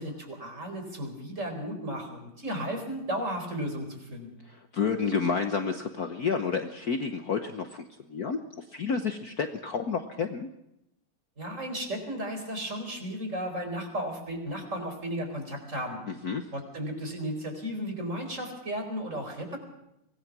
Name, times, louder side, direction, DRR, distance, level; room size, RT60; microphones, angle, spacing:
voice 1, 0.0-4.3 11.4-16.0 16.5-19.6, equal, 35° right, 4 dB, 4.7 m, -34 dB
voice 2, 4.7-7.8 8.1-8.4 8.7-10.5 16.1-16.4, left 5 dB, 50° left, 6 dB, 1.3 m, -30 dB
24.5 x 18.5 x 6.1 m, 0.85 s
omnidirectional pair, 2.4 m